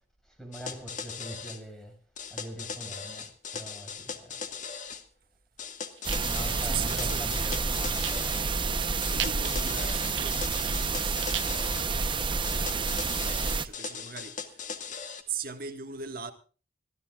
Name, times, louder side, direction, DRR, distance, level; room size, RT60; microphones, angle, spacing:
voice 1, 0.2-2.0 2.3-4.4 6.0-8.1, equal, 5° left, 6.2 m, -43 dB
sound 1, 0.5-1.6 2.2-5.0 5.6-8.5 9.0-11.9 12.4-15.2, left 6 dB, 40° left, 2.0 m, -39 dB
sound 2, 6.0-13.7, right 4 dB, 25° right, 0.9 m, -29 dB
sound 3, 6.0-7.0 7.4-8.5 8.8-8.9 9.2-11.5, right 13 dB, 75° right, 0.7 m, -37 dB
voice 2, 6.6-7.3 8.6-14.3 15.3-16.3, right 6 dB, 50° right, 1.8 m, -40 dB
26.5 x 14.5 x 2.5 m
head